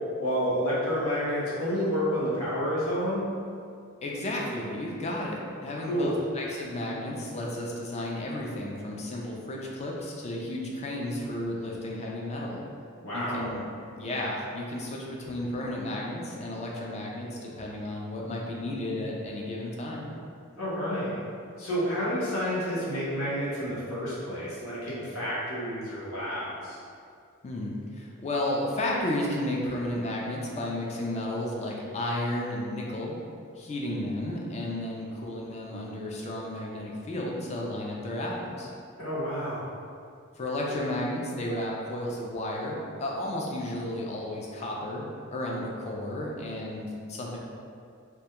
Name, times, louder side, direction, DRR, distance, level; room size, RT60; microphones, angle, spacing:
voice 1, 0.2-3.2 5.8-6.2 13.0-13.5 20.6-21.2 21.6-26.8 39.0-39.7, equal, 90° left, -8 dB, 0.8 m, -29 dB
voice 2, 4.0-12.6 13.1-13.7 14.0-20.1 27.4-33.2 33.6-38.7 40.4-45.0 45.3-47.4, left 1 dB, 30° left, -2 dB, 0.3 m, -33 dB
2.2 x 2.2 x 2.8 m, 2.4 s
head